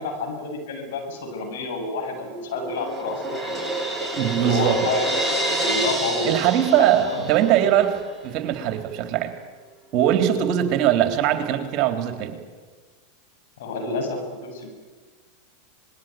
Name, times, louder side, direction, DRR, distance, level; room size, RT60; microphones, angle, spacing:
voice 1, 0.0-3.6 4.5-5.0 5.6-6.3 6.7-7.2 13.6-14.7, left 3 dB, 70° left, 4 dB, 7.6 m, -29 dB
Crash cymbal, 2.0-7.7, right 1 dB, 5° left, 7.6 m, -28 dB
voice 2, 4.2-4.8 6.2-9.3 9.9-12.4, right 11 dB, 45° right, 7 dB, 3.5 m, -21 dB
26.0 x 21.0 x 9.4 m, 1.4 s
hypercardioid pair, 95°, 0 cm